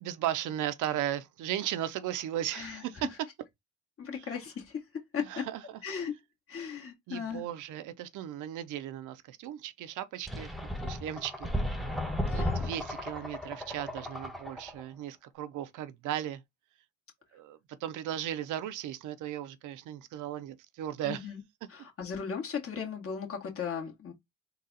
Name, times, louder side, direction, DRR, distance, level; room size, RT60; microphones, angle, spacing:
voice 1, 0.0-3.0 5.3-5.6 7.1-11.5 12.3-16.4 17.3-21.2, right 11 dB, 85° right, 0.6 m, -36 dB
voice 2, 2.5-3.0 4.0-5.5 5.8-6.1 6.5-7.4 12.3-12.6 21.0-21.4 21.7-24.1, left 6 dB, 50° left, 1.8 m, -37 dB
sound 1, 10.3-14.8, left 1 dB, ahead, 0.8 m, -34 dB
3.9 x 2.4 x 4.0 m
cardioid pair, 90°, 30 cm